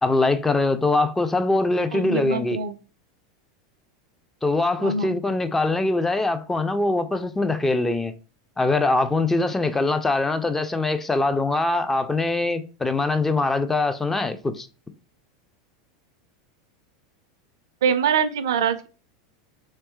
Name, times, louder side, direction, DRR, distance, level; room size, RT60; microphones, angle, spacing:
voice 1, 0.0-2.6 4.4-8.2 8.6-14.7, left 2 dB, 10° left, 0.4 m, -23 dB
voice 2, 1.9-2.7 4.8-5.1 17.8-18.9, right 6 dB, 70° right, 0.4 m, -24 dB
3.2 x 3.1 x 3.0 m
figure-of-eight pair, 85°, 2 cm